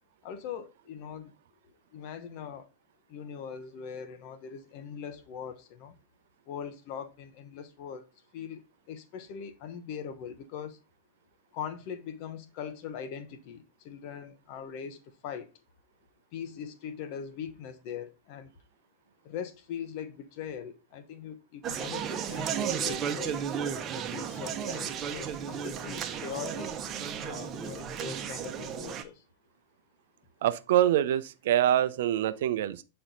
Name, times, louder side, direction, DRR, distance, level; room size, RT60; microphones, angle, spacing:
voice 1, 0.2-1.3 1.9-2.7 3.1-6.0 6.5-10.8 11.5-15.5 16.3-18.5 19.2-23.4 23.9-26.8 27.2-29.2, left 7 dB, 45° left, 1.0 m, -41 dB
Conversation, 21.6-29.0, right 8 dB, 30° right, 1.0 m, -34 dB
voice 2, 30.4-32.8, right 11 dB, 55° right, 0.7 m, -25 dB
8.8 x 4.4 x 4.0 m
figure-of-eight pair, 90°, 0 cm